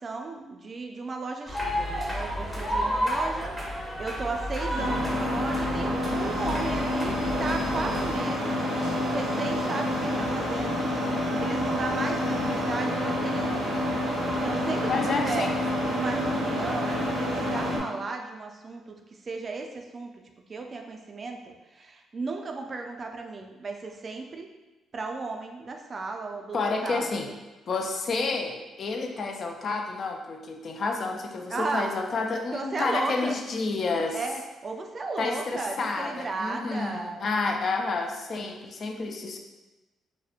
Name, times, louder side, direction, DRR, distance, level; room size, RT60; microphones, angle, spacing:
voice 1, 0.0-3.5 3.8-8.5 8.9-13.8 14.3-15.5 15.9-20.1 20.5-24.5 24.9-27.1 31.5-32.2 32.5-33.4 34.1-37.2, right 3 dB, 40° right, 3 dB, 0.3 m, -35 dB
sound 1, 1.5-8.2, equal, ahead, 0.7 m, -31 dB
sound 2, 4.7-17.8, left 1 dB, 85° right, 0.6 m, -28 dB
voice 2, 14.8-15.5 26.5-27.3 27.7-34.2 35.2-39.4, left 3 dB, 50° left, 3 dB, 0.3 m, -30 dB
2.8 x 2.0 x 2.3 m, 1.1 s
cardioid pair, 90°, 0 cm